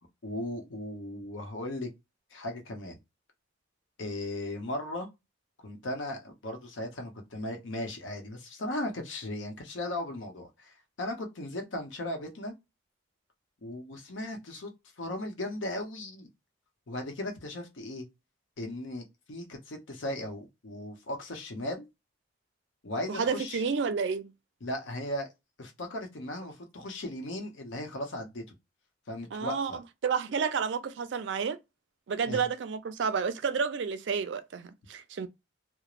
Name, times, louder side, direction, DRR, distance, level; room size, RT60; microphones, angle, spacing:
voice 1, 0.2-1.9 2.3-3.0 4.0-5.1 5.6-12.5 13.6-14.7 15.0-16.3 16.9-18.1 18.6-21.8 22.8-23.6 24.6-25.3 25.6-28.5 29.1-29.8 32.3-32.5, left 1 dB, 85° left, 0.8 m, -37 dB
voice 2, 23.1-24.3 29.3-29.7 30.0-31.6 32.1-35.3, right 6 dB, 70° right, 0.4 m, -30 dB
3.0 x 2.0 x 2.4 m
head